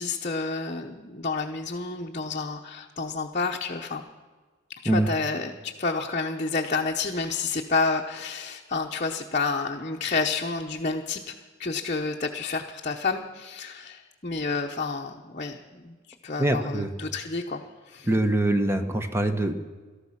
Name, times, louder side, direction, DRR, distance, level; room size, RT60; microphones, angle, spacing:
voice 1, 0.0-4.0 4.8-11.3 11.6-16.0 16.2-18.1, left 4 dB, 35° left, 0 dB, 0.9 m, -30 dB
voice 2, 16.4-16.9 18.0-19.5, right 1 dB, 10° right, 8 dB, 1.0 m, -24 dB
18.5 x 13.5 x 5.8 m, 1.4 s
head